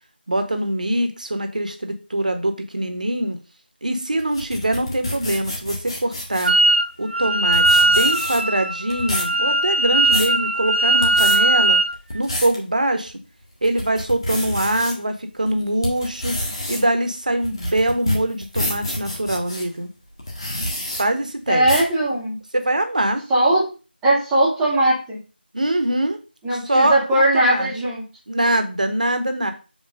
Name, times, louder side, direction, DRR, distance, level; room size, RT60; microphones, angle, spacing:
voice 1, 0.3-3.4 3.8-6.5 7.0-11.8 12.1-13.2 13.6-16.4 16.7-19.9 21.0-21.8 22.5-23.2 25.5-26.2 26.5-27.7 28.3-29.5, right 1 dB, 45° right, 7 dB, 1.1 m, -23 dB
sound 1, 4.2-6.6 7.2-7.3 7.5-8.6 8.9-9.3 9.8-10.4 10.9-11.4 11.9-12.6 13.1-13.2 13.6-14.9 15.5-19.6 20.2-21.0 21.6-21.9, left 1 dB, 25° left, 1.4 m, -28 dB
Wind instrument woodwind instrument, 6.5-6.9 7.1-11.9, right 2 dB, 75° right, 0.6 m, -19 dB
voice 2, 21.5-22.4 23.3-23.6 24.0-25.2 26.4-28.0, right 1 dB, 5° right, -9 dB, 0.9 m, -19 dB
7.3 x 3.1 x 5.1 m, 0.33 s
figure-of-eight pair, 170°, 6 cm